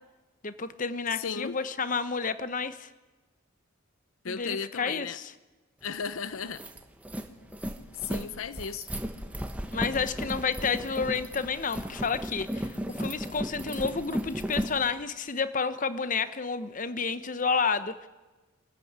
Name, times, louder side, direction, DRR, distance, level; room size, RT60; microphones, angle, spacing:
voice 1, 0.4-2.9 4.3-5.3 9.7-18.1, left 5 dB, 35° left, 0.9 m, -30 dB
voice 2, 1.1-1.6 4.2-5.2 5.8-6.6 8.0-8.9, left 6 dB, 70° left, 0.7 m, -35 dB
sound 1, 5.9-6.0 6.4-14.8, equal, 5° right, 1.4 m, -35 dB
24.0 x 14.5 x 9.5 m
head